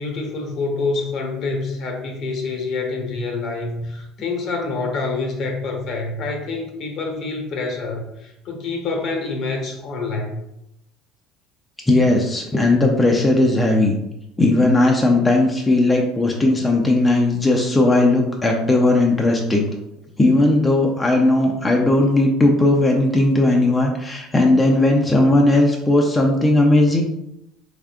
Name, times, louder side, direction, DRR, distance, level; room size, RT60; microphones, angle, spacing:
voice 1, 0.0-10.3, left 3 dB, 55° left, 2 dB, 1.0 m, -27 dB
voice 2, 11.9-14.0 14.4-19.7 20.2-27.0, left 2 dB, 20° left, 0 dB, 0.6 m, -17 dB
3.5 x 3.5 x 2.4 m, 0.83 s
supercardioid pair, 85°, 0 cm